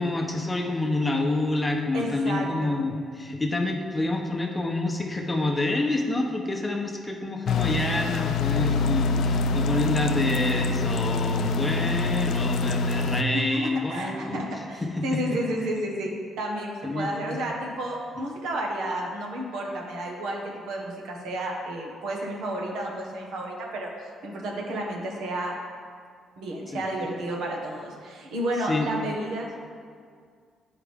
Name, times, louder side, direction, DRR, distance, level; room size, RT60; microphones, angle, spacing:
voice 1, 0.0-14.4 14.8-15.2 16.8-17.4 26.7-26.8 28.7-28.9, left 2 dB, 20° left, 2 dB, 0.9 m, -28 dB
voice 2, 1.9-2.7 13.3-23.9 24.2-25.5 26.4-29.5, right 1 dB, 85° right, -1 dB, 1.3 m, -31 dB
sound 1, 7.5-13.2, left 3 dB, 75° left, 0.4 m, -25 dB
9.5 x 4.8 x 3.6 m, 2.1 s
cardioid pair, 95°, 0 cm